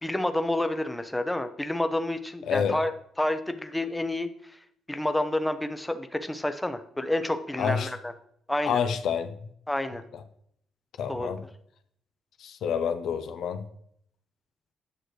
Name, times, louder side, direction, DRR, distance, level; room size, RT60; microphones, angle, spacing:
voice 1, 0.0-2.9 3.2-4.3 4.9-8.1 8.5-8.8 9.7-10.0 11.1-11.4, left 1 dB, 10° left, 8 dB, 0.6 m, -29 dB
voice 2, 2.5-2.8 7.6-7.9 8.6-9.3 11.0-11.4 12.4-13.6, left 7 dB, 70° left, 9 dB, 0.6 m, -28 dB
8.9 x 6.4 x 3.2 m, 0.68 s
cardioid pair, 90°, 0 cm